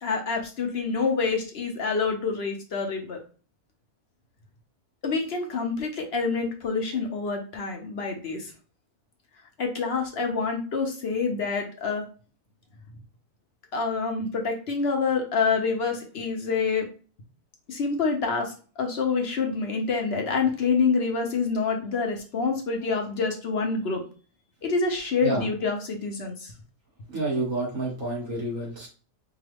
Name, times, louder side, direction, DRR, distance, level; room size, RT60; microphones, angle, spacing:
voice 1, 0.0-3.2 5.0-8.5 9.6-12.0 13.7-16.9 17.7-24.0 24.6-26.5, left 4 dB, 55° left, 2 dB, 0.7 m, -27 dB
voice 2, 27.1-28.9, right 2 dB, 50° right, -4 dB, 1.9 m, -29 dB
4.6 x 2.3 x 3.3 m, 0.38 s
omnidirectional pair, 1.8 m